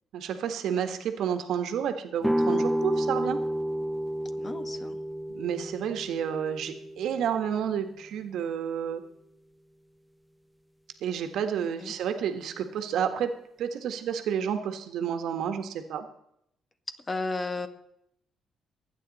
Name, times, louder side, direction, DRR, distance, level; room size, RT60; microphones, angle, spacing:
voice 1, 0.1-3.4 5.3-9.0 11.0-16.1, right 8 dB, 80° right, 7 dB, 1.5 m, -30 dB
sound 1, 2.2-8.0, equal, ahead, 0.9 m, -30 dB
voice 2, 4.4-5.0 11.8-11.9 17.1-17.7, left 3 dB, 30° left, 9 dB, 1.6 m, -33 dB
24.0 x 9.1 x 4.2 m, 0.75 s
cardioid pair, 90°, 0 cm